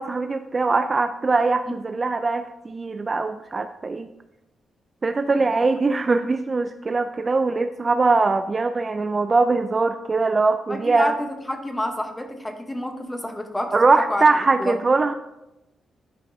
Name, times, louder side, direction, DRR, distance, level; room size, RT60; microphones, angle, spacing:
voice 1, 0.0-4.1 5.0-11.1 13.7-15.1, right 3 dB, 30° right, 9 dB, 0.3 m, -21 dB
voice 2, 10.7-14.3 14.6-14.8, left 1 dB, 10° left, 5 dB, 1.0 m, -29 dB
11.5 x 5.1 x 2.7 m, 0.92 s
cardioid pair, 110°, 0 cm